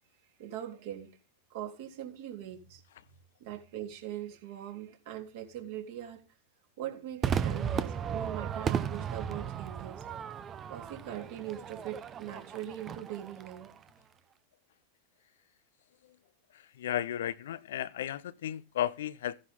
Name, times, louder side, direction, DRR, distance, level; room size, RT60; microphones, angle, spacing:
voice 1, 0.4-1.1 1.5-2.8 3.4-6.2 6.8-10.0 10.7-13.7, right 11 dB, 50° right, 3.5 m, -41 dB
Crowd / Fireworks, 7.2-13.8, right 8 dB, 25° right, 0.9 m, -35 dB
voice 2, 16.5-19.4, left 11 dB, 60° left, 0.6 m, -34 dB
15.0 x 10.5 x 3.8 m
figure-of-eight pair, 90°, 0 cm